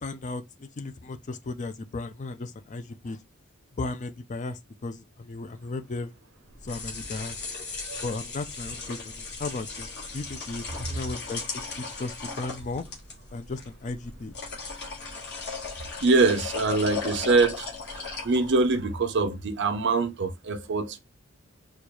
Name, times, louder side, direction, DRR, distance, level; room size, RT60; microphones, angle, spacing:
voice 1, 0.0-3.2 3.8-6.1 6.6-7.4 8.0-11.4 11.8-12.8 13.3-14.3, left 3 dB, 35° left, 0.4 m, -35 dB
sound 1, 6.5-18.8, left 4 dB, 50° left, 1.5 m, -37 dB
voice 2, 16.0-17.7 18.2-21.0, right 3 dB, 55° right, 0.6 m, -24 dB
4.3 x 2.3 x 3.0 m
head